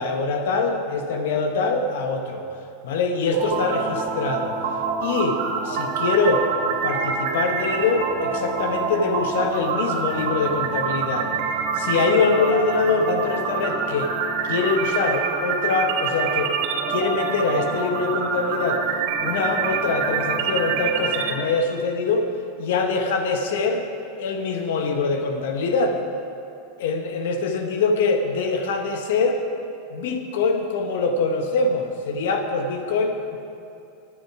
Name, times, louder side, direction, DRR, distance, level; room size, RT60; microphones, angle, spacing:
voice 1, 0.0-2.4 2.8-4.5 5.0-6.5 6.8-11.3 11.7-14.2 14.5-16.5 16.9-18.8 19.2-22.3 22.6-23.8 24.2-26.0 26.8-29.4 29.9-33.4, left 4 dB, 75° left, 5 dB, 1.3 m, -24 dB
sound 1, 3.3-21.3, right 5 dB, 65° right, 2.8 m, -26 dB
21.5 x 7.5 x 4.8 m, 2.6 s
hypercardioid pair, 110°, 0 cm